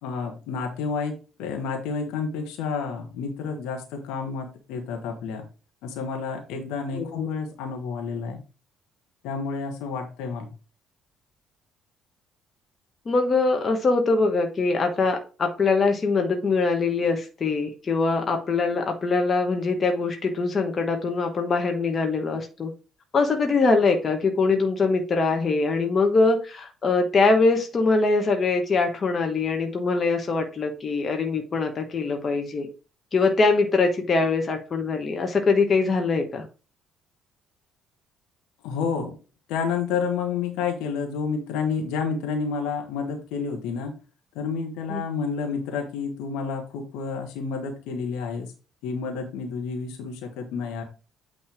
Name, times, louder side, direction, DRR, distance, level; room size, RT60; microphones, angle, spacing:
voice 1, 0.0-5.4 5.8-8.4 9.2-10.5 38.6-39.2 39.5-43.9 44.3-48.5 48.8-50.8, left 5 dB, 65° left, 3 dB, 1.5 m, -30 dB
voice 2, 6.9-7.3 13.0-22.7 23.1-32.7 33.1-36.5 44.9-45.0, left 3 dB, 40° left, 4 dB, 1.3 m, -23 dB
8.6 x 3.3 x 4.5 m, 0.34 s
figure-of-eight pair, 50°, 0 cm